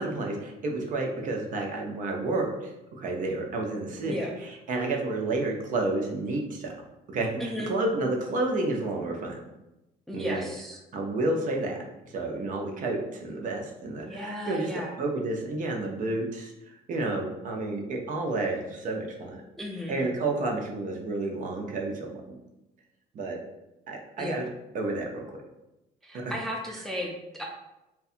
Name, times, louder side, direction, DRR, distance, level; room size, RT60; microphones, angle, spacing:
voice 1, 0.0-2.7 3.0-6.7 7.1-9.4 10.1-10.4 10.9-11.8 12.0-14.7 15.0-19.4 19.9-22.2 23.1-23.4 23.9-24.5 24.7-25.2 26.1-26.2, right 2 dB, 50° right, 1 dB, 0.5 m, -30 dB
voice 2, 7.4-7.7 10.1-10.8 14.1-14.9 19.6-20.0 24.2-24.5 26.0-27.5, equal, ahead, -1 dB, 0.3 m, -34 dB
2.7 x 2.2 x 2.4 m, 0.94 s
cardioid pair, 110°, 17 cm